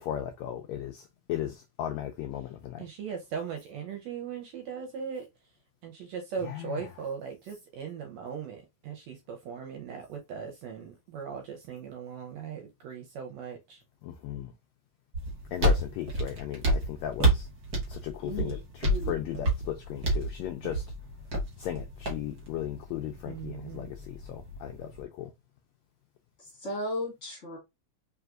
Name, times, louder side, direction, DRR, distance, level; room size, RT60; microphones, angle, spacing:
voice 1, 0.0-2.9 6.4-6.9 14.0-14.5 15.5-17.5 17.9-20.8 21.6-25.3, left 11 dB, 85° left, 1.5 m, -36 dB
voice 2, 2.8-5.3 5.8-13.8 23.3-23.9, right 6 dB, 75° right, 1.6 m, -39 dB
sound 1, 15.1-25.0, right 1 dB, 50° right, 1.1 m, -30 dB
voice 3, 18.2-19.3 26.6-27.6, left 2 dB, 25° left, 1.8 m, -36 dB
4.6 x 3.3 x 2.4 m
omnidirectional pair, 3.6 m